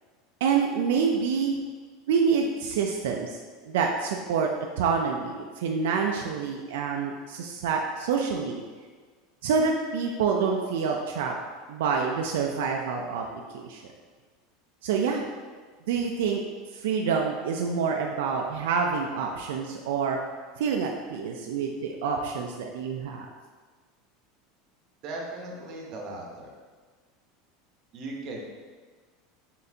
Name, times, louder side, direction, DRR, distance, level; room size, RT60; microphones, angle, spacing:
voice 1, 0.4-1.6 2.1-3.4 3.7-4.5 4.8-8.6 9.4-11.3 11.7-13.2 13.5-13.8 14.8-15.2 15.9-16.4 16.7-20.2 20.6-23.3, right 5 dB, 80° right, 2 dB, 0.3 m, -27 dB
voice 2, 25.0-26.5 27.9-28.4, right 2 dB, 40° right, 0 dB, 0.8 m, -37 dB
4.1 x 3.8 x 2.7 m, 1.5 s
supercardioid pair, 160°, 0 cm